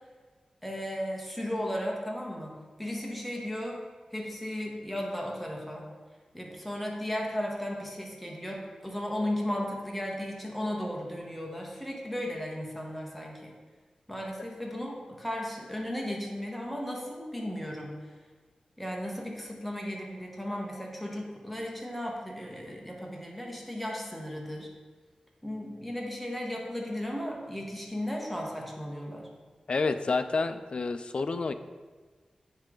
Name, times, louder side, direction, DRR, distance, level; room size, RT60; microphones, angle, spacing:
voice 1, 0.6-3.8 4.1-5.9 6.3-13.5 14.1-18.0 18.8-24.7 25.4-29.3, left 1 dB, ahead, -1 dB, 1.2 m, -35 dB
voice 2, 29.7-31.5, left 4 dB, 55° left, 11 dB, 0.3 m, -29 dB
9.6 x 3.3 x 3.8 m, 1.4 s
wide cardioid pair, 85°, 2 cm